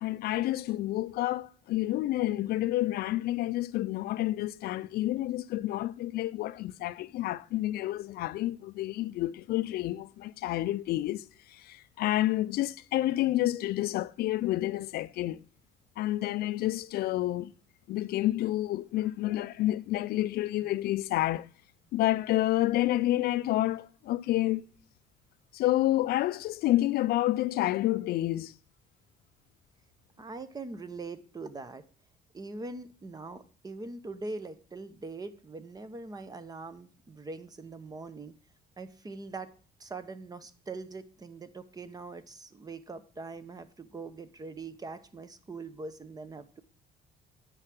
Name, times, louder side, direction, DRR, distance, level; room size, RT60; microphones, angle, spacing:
voice 1, 0.0-15.4 16.0-17.5 17.9-21.5 21.9-24.7 25.5-28.5, left 15 dB, 70° left, 0.4 m, -29 dB
voice 2, 30.2-31.8 32.3-38.3 38.8-39.5 39.8-46.6, right 3 dB, 20° right, 0.8 m, -42 dB
9.7 x 4.8 x 5.8 m
cardioid pair, 110°, 17 cm